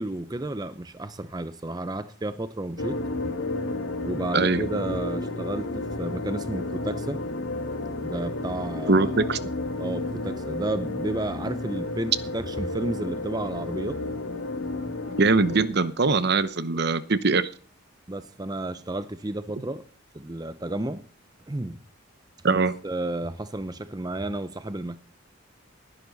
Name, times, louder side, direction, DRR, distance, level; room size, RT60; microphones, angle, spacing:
voice 1, 0.0-3.0 4.0-7.2 8.0-9.3 9.8-14.0 16.7-16.8 18.1-19.9 20.1-21.0 21.5-21.8 22.5-22.6 22.8-25.0, right 1 dB, 20° right, 0.6 m, -32 dB
sound 1, 2.8-15.7, left 2 dB, 75° left, 1.9 m, -32 dB
voice 2, 8.9-9.4 15.1-17.5 22.4-22.7, right 3 dB, 50° right, 0.9 m, -22 dB
19.0 x 11.0 x 4.1 m
head